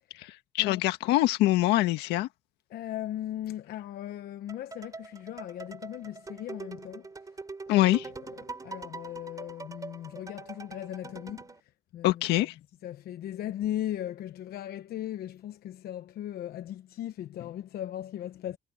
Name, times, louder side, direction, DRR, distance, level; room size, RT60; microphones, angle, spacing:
voice 1, 0.2-2.3 7.7-8.1 12.0-12.5, left 16 dB, 90° left, 1.6 m, -24 dB
voice 2, 2.7-7.1 7.7-7.9 8.6-11.4 11.9-12.5 12.8-18.6, left 12 dB, 65° left, 1.0 m, -37 dB
sound 1, 4.5-11.6, right 3 dB, 20° right, 3.7 m, -43 dB
cardioid pair, 110°, 17 cm